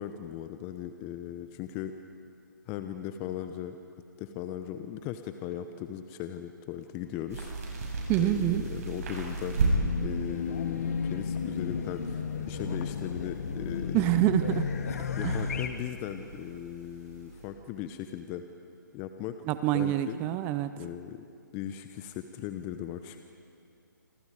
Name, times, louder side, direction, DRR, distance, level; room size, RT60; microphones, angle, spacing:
voice 1, 0.0-1.9 2.7-3.8 4.2-7.9 8.2-9.6 10.0-14.0 15.1-18.4 18.9-19.4 19.7-20.2 20.8-21.2 21.5-23.2, left 11 dB, 20° left, 8 dB, 0.8 m, -38 dB
sound 1, 7.3-17.5, right 2 dB, 45° right, 7.3 m, -36 dB
voice 2, 8.1-8.7 13.9-14.7 15.2-15.4 19.5-20.7, right 13 dB, 15° right, 12 dB, 0.6 m, -26 dB
Race car auto racing / Alarm, 9.5-15.7, left 5 dB, 50° left, 1.9 m, -33 dB
27.0 x 26.5 x 5.0 m, 2.5 s
figure-of-eight pair, 145°, 11 cm